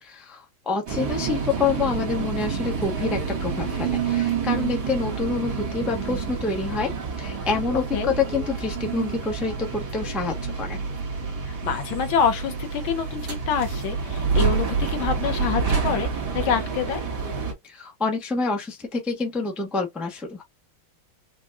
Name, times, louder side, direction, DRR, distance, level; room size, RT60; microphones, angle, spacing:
voice 1, 0.0-6.9 7.2-10.8 17.6-20.4, left 4 dB, ahead, 0.5 m, -27 dB
sound 1, 0.9-17.5, right 5 dB, 55° right, 1.9 m, -28 dB
voice 2, 11.5-16.1 16.3-17.0, left 7 dB, 80° left, 1.7 m, -26 dB
5.1 x 2.3 x 2.4 m
omnidirectional pair, 2.2 m